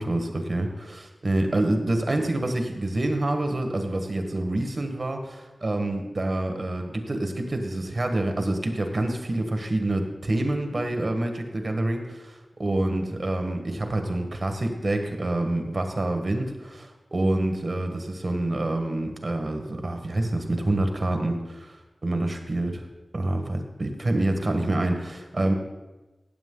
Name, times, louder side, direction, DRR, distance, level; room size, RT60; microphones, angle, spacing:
voice 1, 0.0-21.8 22.0-22.8 23.1-25.5, right 1 dB, 50° right, 5 dB, 1.5 m, -27 dB
15.5 x 7.4 x 3.9 m, 1.1 s
wide cardioid pair, 60°, 0 cm